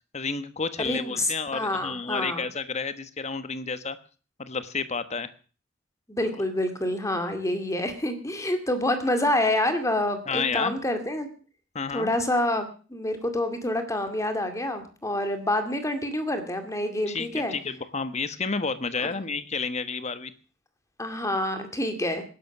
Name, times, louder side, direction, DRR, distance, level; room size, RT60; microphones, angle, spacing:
voice 1, 0.1-4.0 4.4-5.3 6.2-6.4 10.3-10.7 11.7-12.1 17.1-20.3, left 4 dB, 35° left, 12 dB, 1.2 m, -31 dB
voice 2, 0.8-2.5 6.1-11.3 11.9-17.5 19.0-19.1 21.0-22.2, left 1 dB, 15° left, 7 dB, 2.2 m, -27 dB
19.0 x 11.0 x 6.0 m, 0.39 s
head